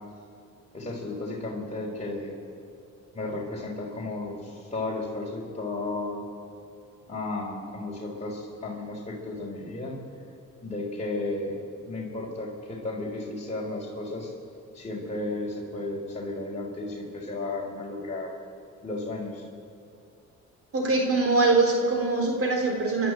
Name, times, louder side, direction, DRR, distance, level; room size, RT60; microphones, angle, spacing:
voice 1, 0.7-2.3 3.1-6.3 7.1-10.0 10.6-11.6 11.9-14.3 14.7-18.3 18.8-19.4, left 2 dB, 25° left, -4 dB, 4.5 m, -33 dB
voice 2, 20.7-23.1, right 3 dB, 50° right, 2 dB, 3.6 m, -23 dB
28.5 x 12.0 x 8.2 m, 2.4 s
cardioid pair, 90°, 30 cm